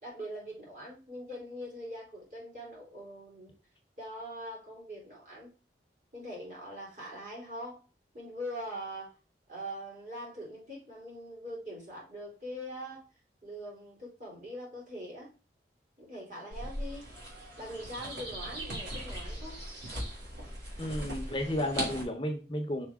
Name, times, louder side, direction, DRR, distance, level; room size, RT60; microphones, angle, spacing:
voice 1, 0.0-3.5 4.0-5.5 6.1-7.8 8.1-9.2 9.5-13.0 13.4-15.3 16.0-17.1 17.6-19.6, equal, 45° right, -4 dB, 3.4 m, -42 dB
sound 1, 16.5-22.0, right 1 dB, 85° right, 3.0 m, -39 dB
voice 2, 20.8-22.9, left 1 dB, 30° left, 4 dB, 0.8 m, -32 dB
5.9 x 4.8 x 3.6 m, 0.33 s
head